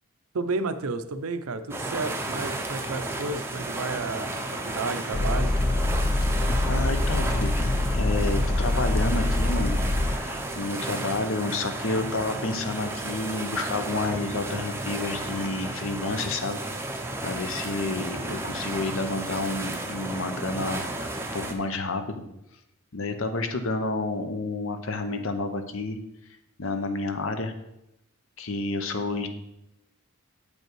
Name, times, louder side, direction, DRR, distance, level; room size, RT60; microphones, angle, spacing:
voice 1, 0.3-4.3 4.6-5.5, right 3 dB, 75° right, 10 dB, 0.6 m, -31 dB
sound 1, 1.7-21.5, right 2 dB, 10° right, 0.6 m, -33 dB
sound 2, 5.1-10.2, left 2 dB, 30° left, 0.4 m, -24 dB
voice 2, 6.7-9.8 10.1-16.6 17.2-22.2 22.9-26.0 26.6-27.5 28.4-29.3, left 2 dB, 60° left, 7 dB, 0.8 m, -30 dB
7.9 x 5.3 x 4.6 m, 0.86 s
head